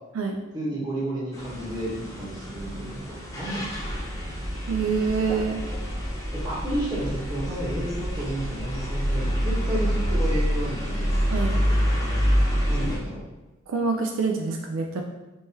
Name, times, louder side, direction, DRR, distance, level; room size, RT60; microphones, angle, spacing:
voice 1, 0.5-3.7 6.3-11.1 12.7-13.3, right 1 dB, 20° right, -6 dB, 1.0 m, -31 dB
sound 1, 1.3-13.0, equal, 15° left, 0.6 m, -27 dB
voice 2, 4.7-5.6 11.3-11.6 13.7-15.0, right 4 dB, 75° right, 3 dB, 0.4 m, -26 dB
3.6 x 3.1 x 2.8 m, 1.0 s
head